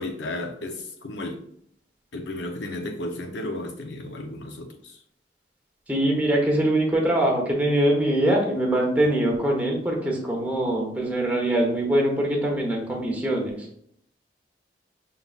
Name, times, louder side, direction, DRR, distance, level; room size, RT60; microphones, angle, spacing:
voice 1, 0.0-1.4 2.1-5.0, left 2 dB, 80° left, 0.7 m, -33 dB
voice 2, 5.9-13.8, right 1 dB, 10° right, 1.0 m, -23 dB
5.5 x 3.5 x 2.4 m
head